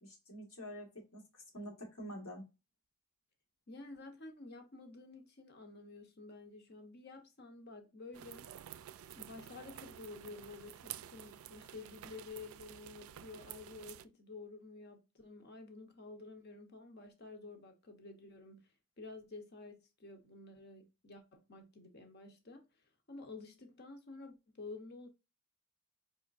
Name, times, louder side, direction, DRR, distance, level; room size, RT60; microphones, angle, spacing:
voice 1, 0.0-2.5, equal, 85° left, 1.7 m, -47 dB
voice 2, 3.7-8.5 9.1-18.6 19.0-22.6 23.1-25.1, left 3 dB, 50° left, 0.9 m, -51 dB
sound 1, 8.1-14.1, right 11 dB, 85° right, 0.3 m, -51 dB
4.2 x 3.2 x 2.5 m
head